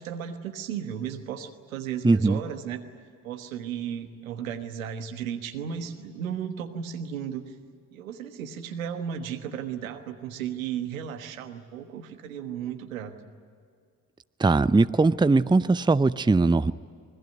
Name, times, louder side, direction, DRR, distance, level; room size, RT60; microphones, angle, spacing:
voice 1, 0.0-2.8 3.2-7.4 7.9-13.1, right 8 dB, 90° right, 7 dB, 1.4 m, -34 dB
voice 2, 2.0-2.4 14.4-16.7, right 3 dB, 10° right, 14 dB, 0.7 m, -20 dB
26.5 x 21.5 x 9.3 m, 2.2 s
hypercardioid pair, 40°, 40 cm